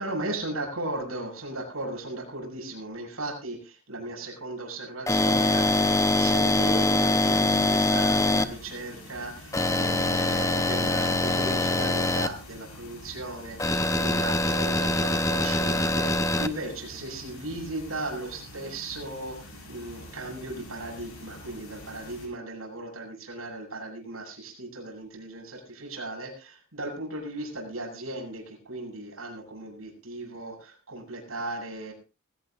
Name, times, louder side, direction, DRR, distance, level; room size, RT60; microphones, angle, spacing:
voice 1, 0.0-31.9, right 2 dB, 80° right, 1 dB, 7.1 m, -36 dB
sound 1, 5.1-8.4 9.5-12.3 13.6-16.5, left 2 dB, 15° left, 0.8 m, -24 dB
sound 2, 5.2-22.3, left 1 dB, 90° left, 7.1 m, -46 dB
20.5 x 17.0 x 2.5 m, 0.32 s
head